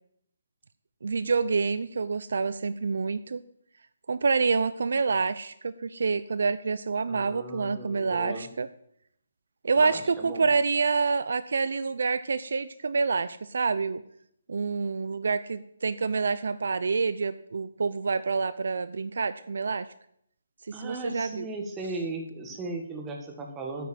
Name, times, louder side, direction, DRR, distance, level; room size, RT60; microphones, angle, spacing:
voice 1, 1.0-3.4 4.1-8.7 9.6-14.0 14.5-19.9 20.7-21.5, right 4 dB, 60° right, 14 dB, 0.6 m, -27 dB
voice 2, 7.1-8.5 9.8-10.4 20.7-23.9, right 2 dB, 10° right, 2 dB, 1.6 m, -37 dB
9.4 x 9.2 x 9.1 m, 0.71 s
hypercardioid pair, 170°, 0 cm